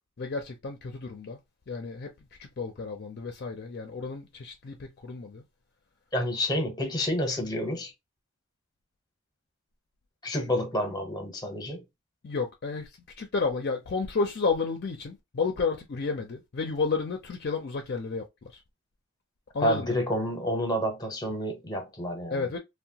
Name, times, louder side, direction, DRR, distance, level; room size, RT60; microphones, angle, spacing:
voice 1, 0.2-1.4 1.7-2.1 2.4-5.4 12.2-12.9 13.2-18.6 19.5-20.0 22.3-22.6, left 4 dB, 50° left, 0.4 m, -31 dB
voice 2, 6.1-7.9 10.2-11.8 19.6-22.5, equal, 20° left, 0.7 m, -29 dB
2.8 x 2.1 x 2.7 m
head